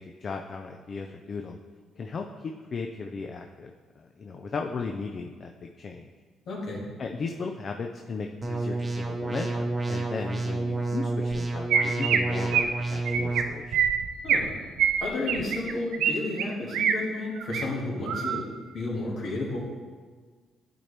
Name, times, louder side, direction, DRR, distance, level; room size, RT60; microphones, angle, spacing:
voice 1, 0.0-1.6 2.0-6.1 7.0-13.8, left 4 dB, 45° left, 3 dB, 0.4 m, -36 dB
voice 2, 6.5-6.8 14.2-14.5 15.0-18.5 18.7-19.6, left 2 dB, 65° left, -3 dB, 1.8 m, -32 dB
sound 1, 8.4-13.4, right 2 dB, 25° right, 0.8 m, -29 dB
Chirp tweet, 11.3-11.4 11.7-12.2 12.5-12.7 13.1-13.4 13.7-14.4 14.8-16.1 16.4-16.9 17.4-17.6 18.1-18.4, right 8 dB, 85° right, 0.4 m, -24 dB
9.1 x 4.5 x 3.3 m, 1.5 s
cardioid pair, 90°, 0 cm